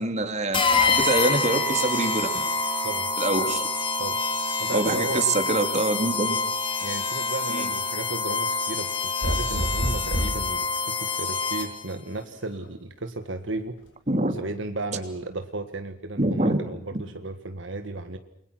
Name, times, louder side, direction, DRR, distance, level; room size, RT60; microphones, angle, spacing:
voice 1, 0.0-2.5 3.2-3.7 4.7-6.4 7.5-7.7 14.1-14.3 16.2-16.6, right 2 dB, 35° right, 7 dB, 3.1 m, -25 dB
sound 1, 0.5-11.9, left 3 dB, 25° left, 3.1 m, -26 dB
voice 2, 4.6-5.3 6.8-13.8 14.4-18.2, right 2 dB, 70° right, 7 dB, 1.7 m, -34 dB
sound 2, 9.2-10.5 12.1-12.7, equal, 70° left, 5.5 m, -28 dB
29.5 x 22.5 x 6.1 m, 0.73 s
head